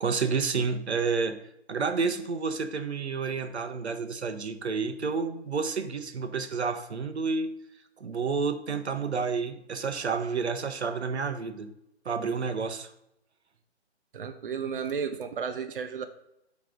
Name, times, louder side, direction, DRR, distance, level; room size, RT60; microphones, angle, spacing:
voice 1, 0.0-1.4 1.7-7.5 8.0-11.7 12.0-12.9, right 5 dB, 70° right, 8 dB, 1.0 m, -30 dB
voice 2, 14.1-16.0, right 6 dB, 50° right, 7 dB, 0.6 m, -33 dB
7.7 x 3.3 x 5.1 m, 0.80 s
hypercardioid pair, 165°, 34 cm